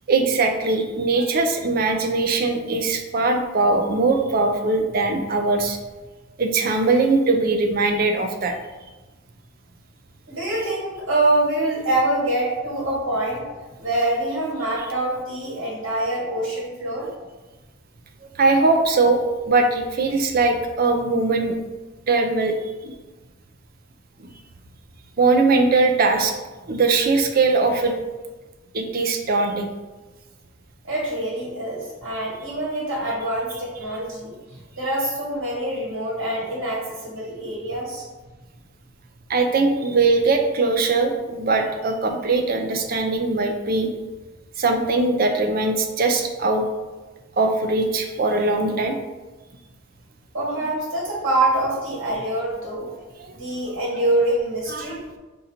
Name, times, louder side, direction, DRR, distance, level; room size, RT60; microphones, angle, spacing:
voice 1, 0.1-5.8 6.4-8.5 18.4-19.2 19.5-21.5 22.1-22.6 22.8-22.9 25.2-26.3 26.7-27.9 28.7-29.7 33.9-34.0 39.3-43.9 44.6-46.6 47.4-49.0 53.2-53.3 54.7-55.0, right 3 dB, 45° right, 4 dB, 0.5 m, -20 dB
voice 2, 10.3-17.1 30.8-34.4 34.8-38.0 50.3-52.9 53.3-55.0, right 1 dB, 70° right, -5 dB, 1.4 m, -25 dB
3.9 x 2.7 x 4.2 m, 1.2 s
head